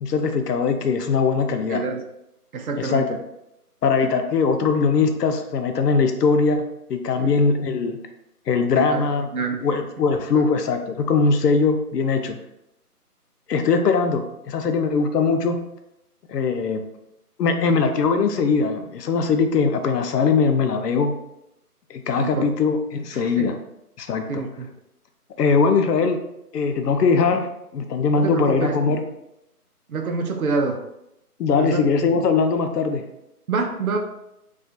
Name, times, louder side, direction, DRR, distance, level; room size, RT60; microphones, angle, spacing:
voice 1, 0.0-1.8 2.8-3.2 3.8-8.0 8.5-9.3 9.6-12.4 13.5-15.6 16.3-16.8 17.4-21.1 21.9-23.6 24.0-24.4 25.4-26.2 26.5-27.5 27.7-29.0 31.4-33.0, left 5 dB, 85° left, 6 dB, 0.5 m, -21 dB
voice 2, 1.7-2.0 2.5-3.0 7.2-7.3 8.8-9.0 9.3-9.7 22.2-22.5 23.1-23.5 24.3-24.7 28.2-28.7 29.9-30.8 31.5-31.8 33.5-34.0, right 4 dB, 65° right, 4 dB, 0.5 m, -26 dB
2.4 x 2.2 x 2.6 m, 0.85 s
figure-of-eight pair, 175°, 47 cm